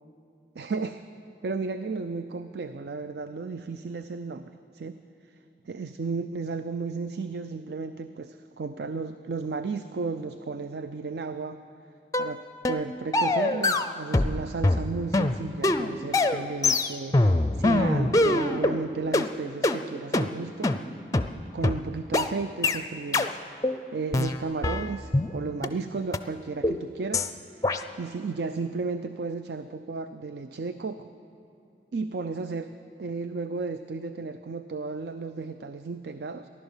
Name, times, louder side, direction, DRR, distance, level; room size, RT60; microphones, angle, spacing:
voice 1, 0.6-1.0 1.4-5.0 5.7-11.6 12.2-21.2 21.5-23.4 23.9-27.3 27.5-27.6 28.0-31.1 31.9-36.5, right 4 dB, 70° right, 11 dB, 0.4 m, -34 dB
sound 1, 12.1-12.3 12.6-12.8 13.1-14.4 14.6-18.8 19.1-19.3 19.6-19.8 20.1-20.3 20.6-20.8 21.1-21.3 21.6-21.8 22.1-22.3 22.6-22.8 23.1-23.3 23.6-23.8 24.1-25.3 25.6-25.7 26.1-26.2 26.6-26.8 27.1-27.3 27.6-27.8, left 2 dB, 20° left, 0.5 m, -23 dB
15.5 x 11.5 x 7.2 m, 2.8 s
head